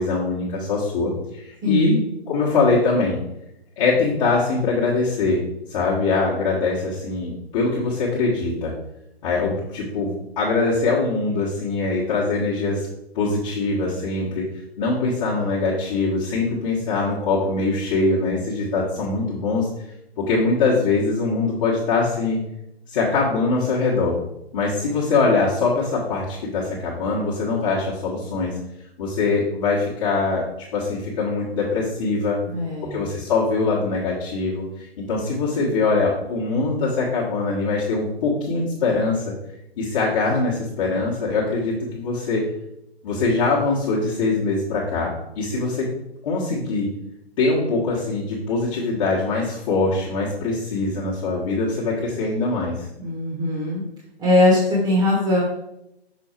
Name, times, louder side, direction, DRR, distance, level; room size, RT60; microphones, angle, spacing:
voice 1, 0.0-1.9 2.3-3.2 3.8-5.4 5.7-8.7 9.2-12.9 13.1-14.5 14.8-19.7 20.2-22.4 22.9-24.2 24.5-28.6 29.0-30.4 30.7-32.4 32.9-39.3 39.8-42.4 43.0-45.9 46.2-46.9 47.4-52.9, left 3 dB, 30° left, -8 dB, 1.5 m, -22 dB
voice 2, 1.6-2.0 32.5-33.0 53.0-53.8 54.2-55.4, left 2 dB, 15° right, -3 dB, 1.4 m, -20 dB
6.3 x 4.6 x 4.5 m, 0.84 s
figure-of-eight pair, 130°, 32 cm